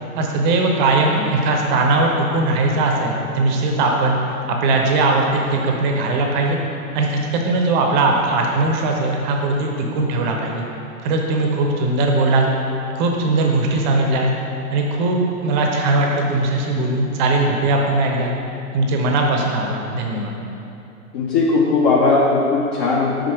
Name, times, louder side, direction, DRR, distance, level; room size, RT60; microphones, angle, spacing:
voice 1, 0.2-4.2 4.5-6.6 6.9-10.6 11.0-12.5 13.0-14.3 14.7-18.3 18.7-20.3, right 2 dB, 30° right, 1 dB, 0.8 m, -19 dB
voice 2, 21.1-23.3, left 3 dB, 35° left, -4 dB, 0.6 m, -18 dB
5.2 x 5.1 x 4.7 m, 2.9 s
figure-of-eight pair, 105°, 44 cm